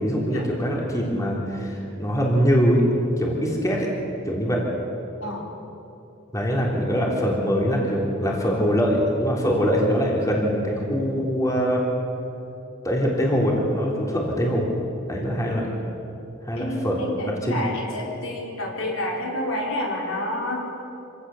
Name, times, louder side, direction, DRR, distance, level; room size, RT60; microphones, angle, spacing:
voice 1, 0.0-2.8 3.2-3.9 4.3-4.6 6.3-11.8 12.8-14.7 15.1-15.6 16.4-17.0 17.2-17.6, equal, 15° left, -2 dB, 3.6 m, -23 dB
voice 2, 16.6-20.7, left 1 dB, 80° left, -1 dB, 4.4 m, -29 dB
26.0 x 17.5 x 7.2 m, 2.8 s
head